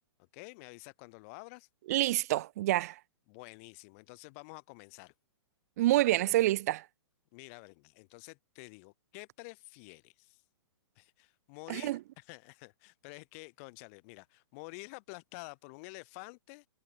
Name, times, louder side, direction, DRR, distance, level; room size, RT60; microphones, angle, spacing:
voice 1, 0.3-1.7 3.3-5.1 7.3-10.4 11.0-16.7, left 30 dB, 30° left, 1.2 m, -49 dB
voice 2, 1.9-3.0 5.8-6.9 11.7-12.0, right 16 dB, 35° right, 0.4 m, -27 dB
hypercardioid pair, 160°, 15 cm